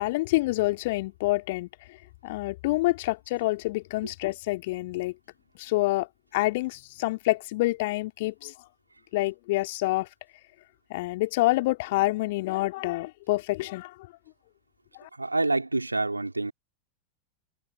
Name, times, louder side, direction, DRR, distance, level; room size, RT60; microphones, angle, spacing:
voice 1, 0.0-1.7 2.2-5.1 5.6-6.1 6.3-8.5 9.1-10.1 10.9-13.9 15.0-15.1, left 20 dB, 50° left, 3.0 m, -27 dB
voice 2, 15.2-16.5, right 2 dB, 80° right, 3.7 m, -27 dB
figure-of-eight pair, 90°, 0 cm